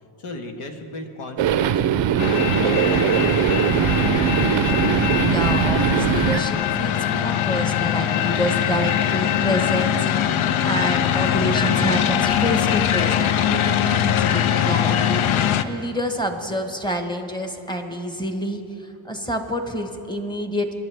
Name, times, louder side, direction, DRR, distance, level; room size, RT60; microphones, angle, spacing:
voice 1, 0.2-4.2, left 2 dB, 90° left, 4 dB, 1.4 m, -37 dB
sound 1, 1.4-6.4, right 10 dB, 65° right, 0.6 m, -20 dB
sound 2, 2.2-15.6, left 10 dB, 75° left, 0.6 m, -22 dB
voice 2, 5.2-20.7, equal, 10° left, 5 dB, 1.1 m, -28 dB
23.0 x 11.5 x 3.4 m, 2.8 s
cardioid pair, 105°, 50 cm